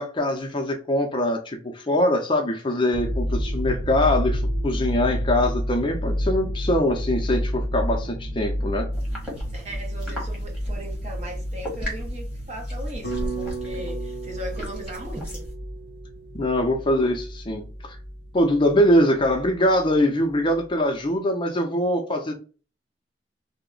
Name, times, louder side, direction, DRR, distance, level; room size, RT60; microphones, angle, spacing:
voice 1, 0.0-8.9 16.3-18.0 18.3-22.3, left 1 dB, 25° left, 0.5 m, -23 dB
sound 1, 2.9-20.0 20.3-20.6, equal, 85° right, 0.7 m, -30 dB
sound 2, 8.9-15.5, equal, 5° right, 1.2 m, -37 dB
voice 2, 9.5-15.5, right 1 dB, 40° right, 0.9 m, -38 dB
sound 3, 13.0-17.3, right 4 dB, 80° left, 0.7 m, -36 dB
2.9 x 2.1 x 3.8 m
head